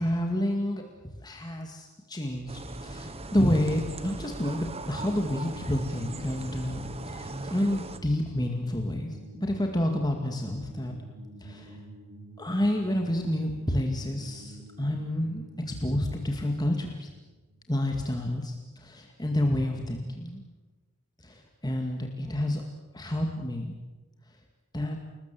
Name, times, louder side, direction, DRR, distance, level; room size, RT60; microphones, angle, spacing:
voice 1, 0.0-11.0 11.4-11.8 12.4-17.1 17.7-20.4 21.2-22.6 22.9-23.7 24.7-25.0, left 1 dB, 20° left, 3 dB, 2.1 m, -29 dB
sound 1, 2.5-8.0, right 2 dB, 25° right, 1.4 m, -39 dB
sound 2, 5.0-18.1, right 1 dB, 80° right, 3.4 m, -48 dB
28.5 x 20.5 x 7.7 m, 1.2 s
head